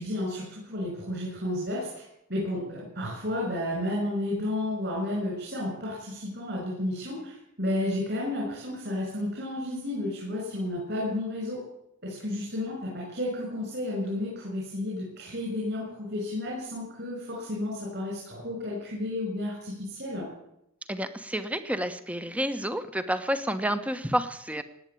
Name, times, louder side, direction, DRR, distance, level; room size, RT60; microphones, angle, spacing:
voice 1, 0.0-2.0 2.3-11.6 12.0-20.2, left 1 dB, 50° right, -3 dB, 7.1 m, -32 dB
voice 2, 20.9-24.6, equal, 5° right, 10 dB, 1.1 m, -30 dB
19.0 x 8.9 x 8.5 m, 0.81 s
head